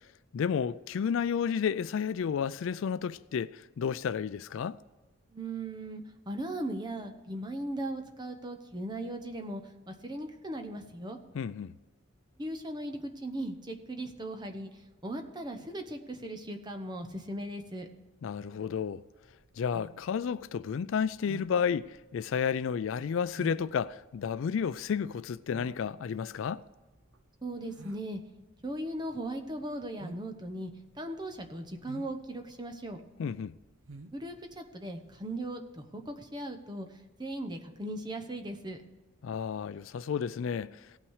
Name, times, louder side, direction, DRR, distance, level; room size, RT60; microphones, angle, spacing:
voice 1, 0.3-4.8 11.3-11.7 18.2-19.0 19.6-26.6 33.2-33.5 39.2-40.7, left 7 dB, 65° left, 0.3 m, -31 dB
voice 2, 5.3-9.6 9.9-11.2 12.4-14.7 15.0-17.9 27.4-28.2 28.6-30.7 31.0-33.0 34.1-36.9 37.2-38.8, right 1 dB, 20° right, 0.9 m, -38 dB
sound 1, 19.2-35.4, right 2 dB, 70° right, 0.6 m, -51 dB
17.0 x 5.9 x 4.7 m
head